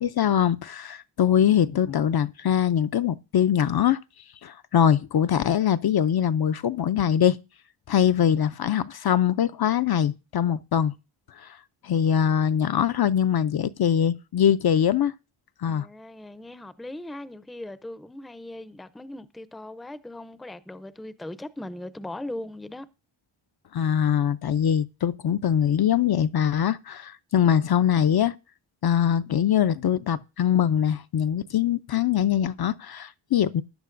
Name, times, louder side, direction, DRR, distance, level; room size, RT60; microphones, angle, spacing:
voice 1, 0.0-4.0 4.4-7.4 7.9-10.9 11.4-11.6 11.8-15.1 15.6-15.9 23.7-28.3 28.8-33.6, left 9 dB, 50° left, 0.5 m, -22 dB
voice 2, 15.7-22.9, left 1 dB, ahead, 0.5 m, -39 dB
15.0 x 11.0 x 2.5 m
wide cardioid pair, 150°, 48 cm